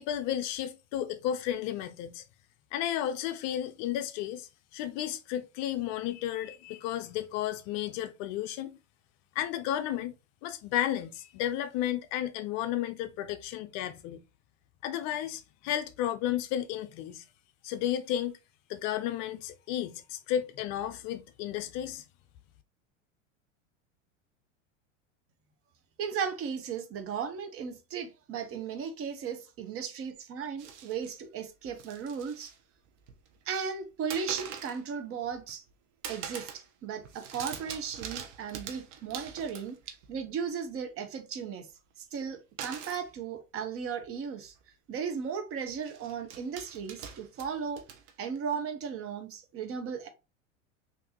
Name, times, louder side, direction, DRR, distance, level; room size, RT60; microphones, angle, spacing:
voice 1, 0.0-2.2 2.7-8.8 9.4-10.1 10.4-14.2 14.8-17.2 17.6-18.4 18.7-22.0, left 11 dB, 45° left, 0.5 m, -33 dB
voice 2, 26.0-32.5 33.5-35.6 36.1-39.8 40.1-41.7 42.1-44.5 44.9-47.8 48.2-50.1, right 6 dB, 35° right, 0.7 m, -36 dB
sound 1, 30.6-31.1 31.6-32.6 32.9-33.4 34.1-34.8 35.2-35.7 36.0-36.7 36.9-40.3 42.6-43.1 44.0-44.1 44.4-44.6 45.7-48.4, right 8 dB, 65° right, 0.8 m, -44 dB
3.4 x 2.6 x 2.8 m
hypercardioid pair, 100°, 38 cm